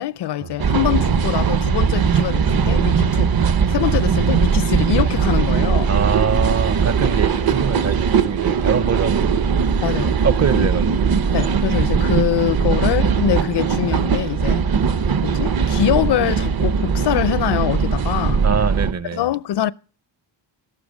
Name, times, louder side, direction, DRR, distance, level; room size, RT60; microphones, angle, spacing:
voice 1, 0.0-3.3 3.7-5.9 9.8-10.2 10.5-10.7 11.3-14.7 15.2-18.4 19.1-19.7, left 12 dB, 65° left, 0.6 m, -23 dB
sound 1, 0.6-18.9, right 6 dB, 55° right, 1.0 m, -19 dB
voice 2, 5.9-9.4 10.2-11.1 18.4-19.3, right 6 dB, 35° right, 0.7 m, -24 dB
14.0 x 12.0 x 6.3 m
wide cardioid pair, 155°, 43 cm